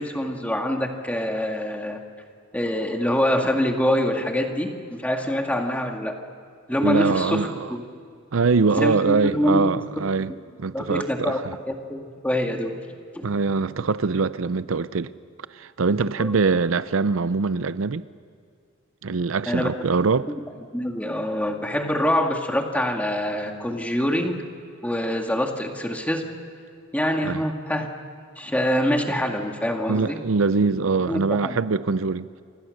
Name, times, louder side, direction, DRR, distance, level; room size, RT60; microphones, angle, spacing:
voice 1, 0.0-2.0 2.5-6.1 6.7-7.8 8.7-9.7 10.3-10.4 10.7-11.4 11.7-12.8 13.1-13.3 16.2-16.3 19.5-19.7 20.3-20.4 20.7-24.4 24.8-26.2 26.9-27.9 28.4-30.2 31.1-31.6, equal, 5° left, 2.0 m, -25 dB
voice 2, 6.8-7.7 8.3-10.3 10.6-11.6 13.2-15.1 15.5-18.0 19.0-20.3 27.2-27.4 29.9-32.3, right 4 dB, 70° right, 0.6 m, -23 dB
29.5 x 25.5 x 6.5 m
head